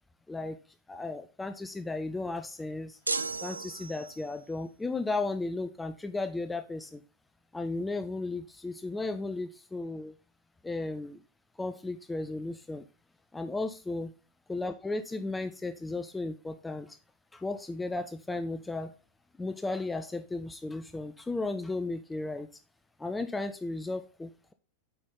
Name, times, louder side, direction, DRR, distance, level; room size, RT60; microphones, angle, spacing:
voice 1, 0.9-3.0 3.4-7.0 7.5-10.1 10.6-11.2 11.6-12.8 13.3-14.1 14.5-16.9 17.3-18.9 19.4-22.5 23.0-24.5, left 2 dB, 10° left, 10 dB, 0.5 m, -35 dB
sound 1, 3.1-4.4, right 4 dB, 80° right, 0.3 m, -34 dB
8.8 x 4.2 x 3.7 m, 0.34 s
figure-of-eight pair, 90°, 0 cm